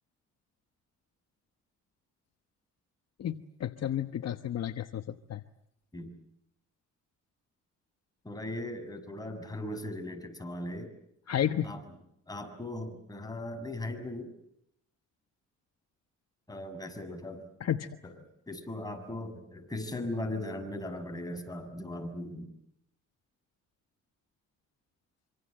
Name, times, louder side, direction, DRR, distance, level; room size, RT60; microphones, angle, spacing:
voice 1, 3.2-5.4 11.3-11.7 17.6-17.9, left 10 dB, 55° left, 9 dB, 1.2 m, -32 dB
voice 2, 8.2-10.9 11.6-11.8 12.3-14.3 16.5-17.5 18.0-18.2 18.5-22.5, left 1 dB, 10° left, 5 dB, 6.7 m, -38 dB
26.0 x 25.5 x 7.7 m, 0.75 s
cardioid pair, 90°, 30 cm